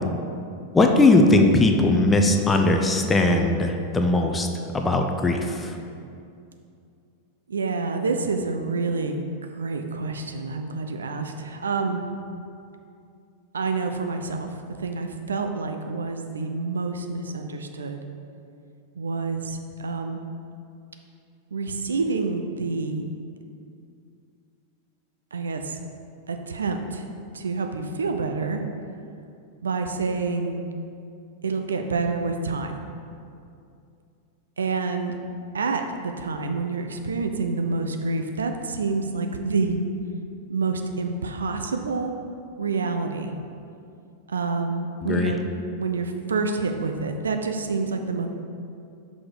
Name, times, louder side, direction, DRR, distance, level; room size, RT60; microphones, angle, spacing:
voice 1, 0.7-4.5 4.7-5.7 45.0-45.3, left 2 dB, 15° left, 4 dB, 0.5 m, -19 dB
voice 2, 7.5-9.2 9.5-12.0 13.5-18.1 19.0-20.2 21.5-23.0 25.3-25.8 26.3-27.1 27.3-28.6 29.6-30.6 31.4-32.8 34.6-35.2 35.5-39.8 40.5-42.1 42.6-43.4 44.3-45.4 45.8-48.3, right 4 dB, 70° right, 5 dB, 0.4 m, -28 dB
5.9 x 4.0 x 4.7 m, 2.5 s
figure-of-eight pair, 90°, 0 cm